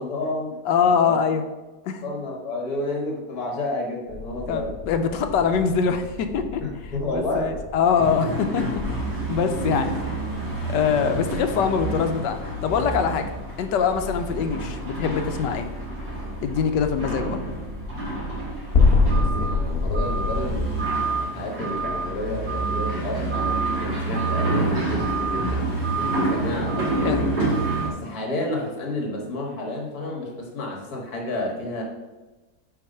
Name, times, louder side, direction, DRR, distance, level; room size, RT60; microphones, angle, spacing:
voice 1, 0.0-0.6 1.1-1.2 2.0-4.8 6.6-7.6 19.1-27.2 27.8-31.8, left 1 dB, 60° left, 0 dB, 2.0 m, -30 dB
voice 2, 0.6-1.4 1.8-2.0 4.5-6.6 7.1-10.2 10.7-13.3 13.6-15.7 16.4-17.4 27.0-27.3, left 6 dB, 80° left, 7 dB, 1.3 m, -23 dB
sound 1, 4.1-20.8, left 3 dB, 40° left, 1.1 m, -29 dB
sound 2, 8.0-27.9, right 2 dB, 85° right, 2.9 m, -28 dB
6.0 x 4.8 x 5.5 m, 1.2 s
omnidirectional pair, 1.9 m